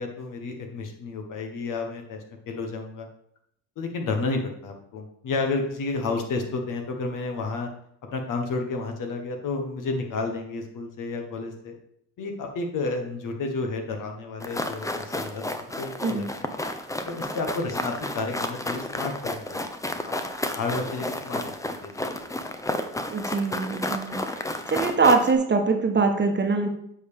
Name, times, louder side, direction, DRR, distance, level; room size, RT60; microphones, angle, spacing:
voice 1, 0.0-2.2 2.5-3.1 3.8-7.7 8.1-11.7 12.2-16.2 17.1-19.6 19.8-20.1 20.6-21.5 21.8-22.2, left 3 dB, 55° left, 4 dB, 1.4 m, -31 dB
sound 1, 14.4-25.4, left 1 dB, 10° left, 0.7 m, -31 dB
voice 2, 23.1-24.4 24.7-26.7, right 4 dB, 30° right, 4 dB, 1.2 m, -23 dB
8.0 x 4.8 x 3.6 m, 0.71 s
hypercardioid pair, 55°, 37 cm